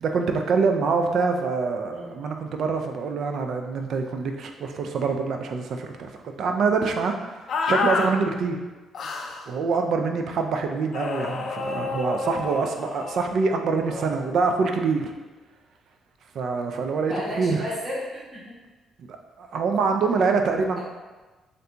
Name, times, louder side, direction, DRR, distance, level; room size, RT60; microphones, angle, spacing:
voice 1, 0.0-8.6 9.5-15.1 16.3-17.6 19.0-20.8, right 4 dB, 65° right, 4 dB, 0.3 m, -25 dB
sound 1, 7.5-8.1 8.9-9.4 10.9-13.3, left 4 dB, 60° left, 0.3 m, -28 dB
voice 2, 13.8-14.2 17.0-18.5, left 1 dB, 20° right, -9 dB, 1.4 m, -33 dB
3.2 x 2.6 x 2.8 m, 1.2 s
cardioid pair, 90°, 0 cm